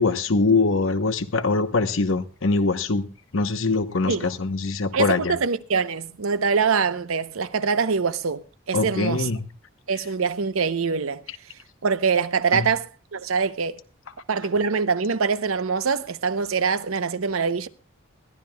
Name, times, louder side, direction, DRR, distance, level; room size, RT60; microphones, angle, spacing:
voice 1, 0.0-3.1 3.3-5.4 8.7-9.4 12.5-12.6, left 3 dB, 70° left, 0.9 m, -23 dB
voice 2, 4.9-9.3 9.9-11.2 11.8-13.8 14.3-17.7, right 5 dB, 80° right, 0.7 m, -24 dB
21.0 x 12.5 x 2.3 m
head